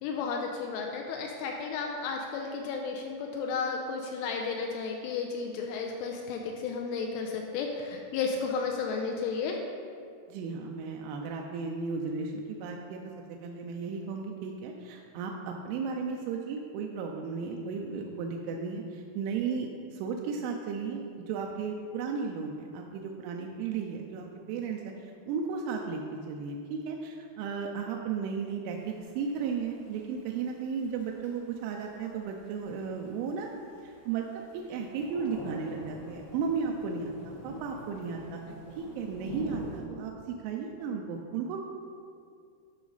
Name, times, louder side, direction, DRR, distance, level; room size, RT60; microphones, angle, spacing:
voice 1, 0.0-9.6, left 5 dB, 85° left, 2 dB, 3.0 m, -33 dB
voice 2, 10.3-13.0 13.4-33.5 33.8-38.4 38.8-41.6, right 5 dB, 85° right, 1 dB, 2.8 m, -35 dB
Thunder / Rain, 28.7-39.8, equal, 65° left, 1.1 m, -46 dB
12.5 x 5.1 x 4.0 m, 2.3 s
omnidirectional pair, 5.9 m